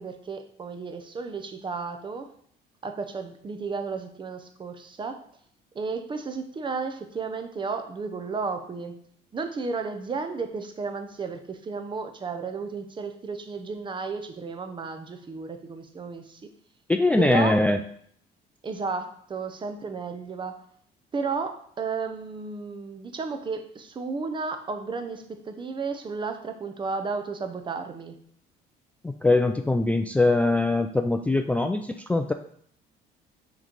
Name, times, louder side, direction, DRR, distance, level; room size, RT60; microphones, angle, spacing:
voice 1, 0.0-2.3 2.8-5.2 5.7-9.0 9.3-16.4 17.2-17.6 18.6-20.6 21.1-28.1, right 4 dB, 30° right, 7 dB, 0.7 m, -33 dB
voice 2, 16.9-17.8 29.0-32.3, left 2 dB, 10° left, 6 dB, 0.3 m, -22 dB
6.2 x 3.2 x 5.2 m, 0.63 s
cardioid pair, 110°, 17 cm